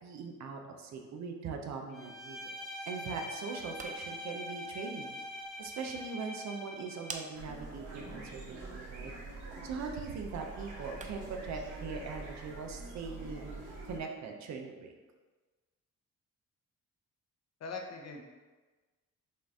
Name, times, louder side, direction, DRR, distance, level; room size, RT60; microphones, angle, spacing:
voice 1, 0.0-2.5 2.9-5.2 5.6-9.1 9.6-14.9, right 5 dB, 65° right, 3 dB, 0.7 m, -41 dB
Bowed string instrument, 1.9-7.3, left 1 dB, ahead, 0.9 m, -43 dB
sound 1, 3.5-11.4, right 4 dB, 25° right, 0.5 m, -52 dB
sound 2, 7.3-14.0, right 3 dB, 85° right, 1.0 m, -45 dB
voice 2, 17.6-18.2, left 3 dB, 60° left, 2 dB, 0.8 m, -41 dB
5.6 x 2.6 x 3.6 m, 1.3 s
cardioid pair, 90°, 30 cm